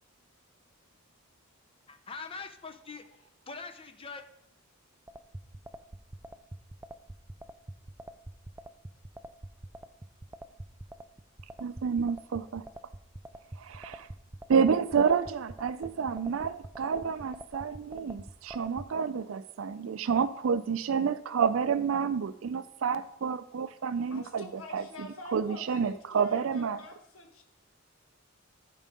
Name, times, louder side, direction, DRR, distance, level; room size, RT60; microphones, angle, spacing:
voice 1, 1.9-4.3, left 4 dB, 25° left, 7 dB, 0.6 m, -43 dB
sound 1, 5.1-18.9, right 1 dB, 10° right, 0.3 m, -44 dB
voice 2, 11.6-12.6 13.6-14.1 14.5-26.8, right 6 dB, 75° right, 12 dB, 0.4 m, -29 dB
voice 3, 24.1-27.4, left 2 dB, 85° left, 3 dB, 1.3 m, -46 dB
11.0 x 4.6 x 5.3 m, 0.81 s
head